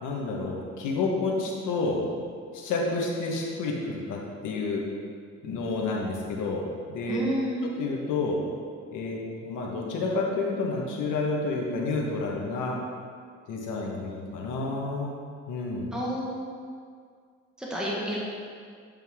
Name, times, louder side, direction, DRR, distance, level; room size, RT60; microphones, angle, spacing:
voice 1, 0.0-2.0 2.5-4.8 5.4-6.6 6.9-7.2 7.8-8.4 8.9-12.7 13.5-15.1 15.5-15.9, left 3 dB, 85° left, -1 dB, 1.4 m, -29 dB
voice 2, 7.1-7.6 15.9-16.6 17.6-18.2, equal, 5° right, -5 dB, 1.5 m, -30 dB
9.6 x 5.4 x 3.7 m, 2.1 s
cardioid pair, 90°, 30 cm